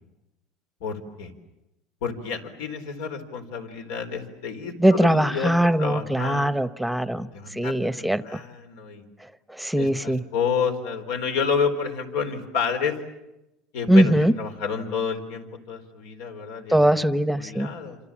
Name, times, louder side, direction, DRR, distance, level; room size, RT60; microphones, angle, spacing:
voice 1, 0.8-1.3 2.0-5.5 5.8-6.5 7.3-9.0 9.8-12.9 13.7-17.0 17.4-18.0, left 6 dB, 85° left, 6 dB, 4.1 m, -29 dB
voice 2, 4.8-8.4 9.5-10.2 13.9-14.3 16.7-17.7, right 1 dB, ahead, 13 dB, 0.9 m, -21 dB
28.5 x 27.0 x 7.4 m, 0.94 s
supercardioid pair, 130°, 0 cm